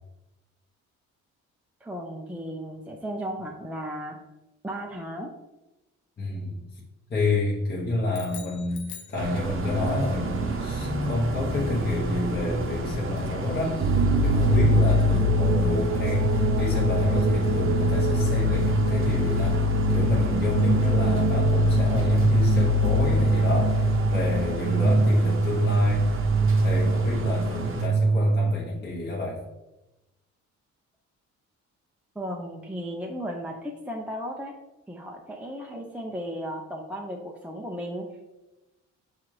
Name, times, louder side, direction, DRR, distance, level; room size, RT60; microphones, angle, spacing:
voice 1, 1.8-4.2 4.6-5.3 32.2-34.5 34.9-38.1, equal, 5° right, 0 dB, 0.4 m, -35 dB
voice 2, 6.2-6.8 7.1-26.2 26.6-29.4, left 2 dB, 35° left, -4 dB, 0.9 m, -29 dB
sound 1, 8.1-9.9, left 8 dB, 70° left, 0.7 m, -44 dB
sound 2, 9.1-27.9, right 2 dB, 45° right, 0.8 m, -31 dB
sound 3, 13.8-28.5, right 1 dB, 75° right, 0.6 m, -22 dB
5.9 x 2.4 x 3.1 m, 1.0 s
cardioid pair, 90°, 30 cm